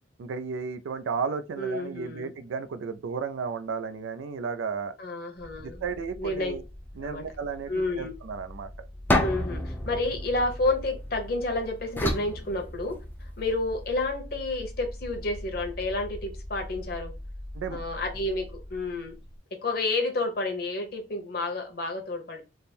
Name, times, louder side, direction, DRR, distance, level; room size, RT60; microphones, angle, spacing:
voice 1, 0.2-5.0 5.6-6.6 7.0-7.7 8.0-8.9 17.5-17.8, right 5 dB, 85° right, 0.4 m, -33 dB
voice 2, 1.6-2.3 5.0-5.8 6.2-6.6 7.0-7.2 7.7-8.1 9.2-17.1 17.7-19.1 19.6-22.4, left 2 dB, 50° left, 0.9 m, -30 dB
sound 1, 5.4-19.4, left 1 dB, 30° right, 0.7 m, -42 dB
sound 2, 9.1-11.3 12.0-13.3, left 1 dB, 10° left, 0.4 m, -29 dB
3.5 x 2.0 x 4.2 m
head